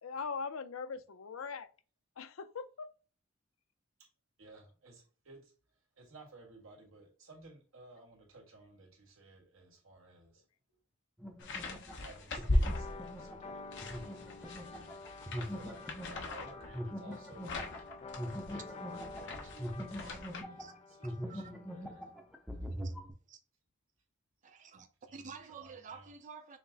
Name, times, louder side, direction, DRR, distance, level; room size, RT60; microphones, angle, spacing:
voice 1, 0.0-1.7 2.2-2.9, left 5 dB, 85° left, 0.5 m, -41 dB
voice 2, 4.4-5.5 6.0-10.4 11.9-15.8 16.1-17.7 18.5-22.0 25.1-26.1, right 2 dB, 85° right, 1.8 m, -56 dB
sound 1, 11.2-20.7 21.0-23.1, equal, ahead, 0.6 m, -43 dB
sound 2, 11.4-13.3 13.7-20.4, left 1 dB, 60° left, 1.0 m, -38 dB
sound 3, 12.6-22.2, left 4 dB, 30° left, 0.3 m, -50 dB
voice 3, 24.4-26.6, right 5 dB, 40° right, 0.5 m, -50 dB
5.7 x 2.0 x 4.0 m
head